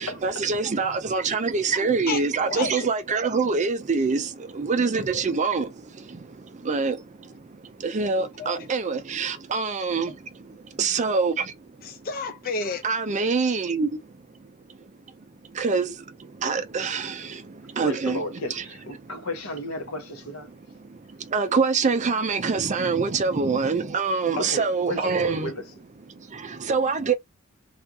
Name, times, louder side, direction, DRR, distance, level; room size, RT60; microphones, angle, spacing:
voice 1, 0.0-4.3 4.5-5.7 6.7-7.0 7.8-10.1 10.8-11.4 12.8-13.9 15.6-15.9 16.4-17.2 17.8-18.2 18.5-18.6 21.3-25.5 26.7-27.1, right 4 dB, 35° right, 0.5 m, -24 dB
voice 2, 1.7-2.9 8.4-8.7 11.8-12.8, left 4 dB, 45° left, 0.5 m, -32 dB
voice 3, 17.8-20.5 24.4-25.6, left 1 dB, 85° left, 1.1 m, -33 dB
3.4 x 2.4 x 2.7 m
head